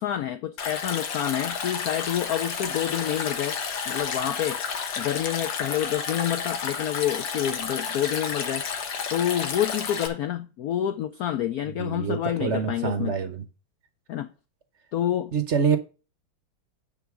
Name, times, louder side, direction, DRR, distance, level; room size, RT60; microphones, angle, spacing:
voice 1, 0.0-3.6 3.9-4.6 5.0-8.7 9.1-13.1 14.1-14.3 14.9-15.3, left 11 dB, 90° left, 0.8 m, -28 dB
Stream, 0.6-10.1, left 6 dB, 65° left, 1.9 m, -31 dB
voice 2, 11.8-13.4 15.3-15.8, right 6 dB, 55° right, 0.8 m, -26 dB
9.8 x 4.1 x 5.9 m
omnidirectional pair, 2.2 m